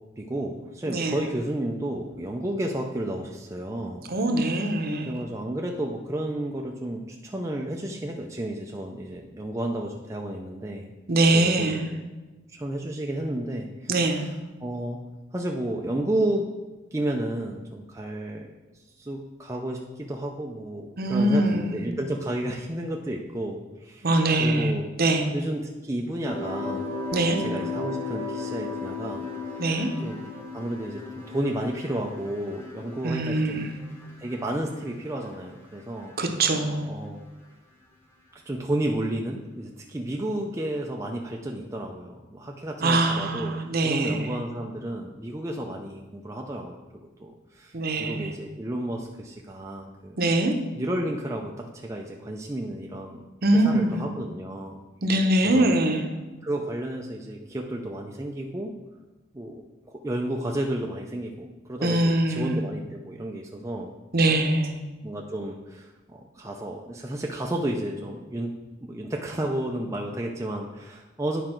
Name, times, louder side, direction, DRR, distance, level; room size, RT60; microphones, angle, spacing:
voice 1, 0.2-4.1 5.0-10.9 11.3-12.0 12.5-14.1 14.6-15.0 15.3-16.5 16.9-18.5 19.0-24.1 24.4-24.9 25.3-27.0 27.4-29.6 30.0-30.2 30.5-33.6 34.2-36.1 36.9-37.2 38.3-46.8 47.2-50.2 50.8-53.2 53.6-54.8 55.5-55.7 56.4-58.7 59.3-59.6 60.0-64.0 65.0-68.5 68.8-71.4, right 1 dB, 15° right, 0 dB, 0.4 m, -32 dB
voice 2, 0.8-1.2 4.1-5.1 11.1-11.9 13.9-14.2 21.0-21.9 24.0-24.7 25.0-25.3 27.1-27.4 29.6-29.9 33.0-33.7 36.2-36.9 42.8-44.4 47.7-48.4 50.2-50.5 53.4-54.0 55.0-56.1 61.8-62.6 64.1-64.8, right 2 dB, 50° right, 5 dB, 0.8 m, -23 dB
sound 1, 26.3-35.4 35.7-36.4, left 3 dB, 10° left, 1.1 m, -36 dB
9.7 x 5.0 x 4.4 m, 1.2 s
head